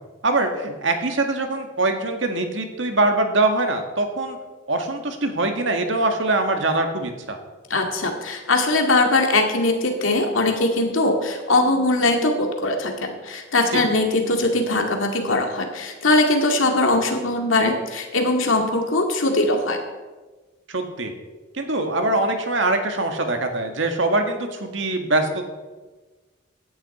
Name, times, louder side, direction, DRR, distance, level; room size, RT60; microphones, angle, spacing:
voice 1, 0.2-4.4 4.7-7.4 13.7-13.8 20.7-21.1 21.5-25.4, right 2 dB, 70° right, 5 dB, 1.8 m, -23 dB
voice 2, 7.7-19.8, left 2 dB, 85° left, 3 dB, 2.3 m, -21 dB
16.0 x 11.0 x 4.3 m, 1.3 s
head